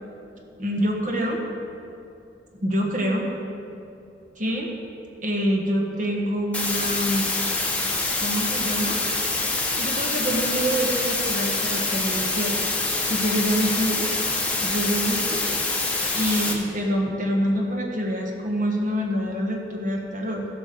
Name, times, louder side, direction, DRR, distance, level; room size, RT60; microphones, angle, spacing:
voice 1, 0.6-1.4 2.6-3.2 4.4-4.7 5.2-7.2 8.2-9.0 9.8-12.5 13.0-14.1 14.6-15.4 16.1-20.5, equal, 45° right, 0 dB, 1.4 m, -26 dB
sound 1, 6.5-16.5, left 3 dB, 10° left, 1.0 m, -25 dB
15.0 x 5.2 x 6.8 m, 2.7 s
head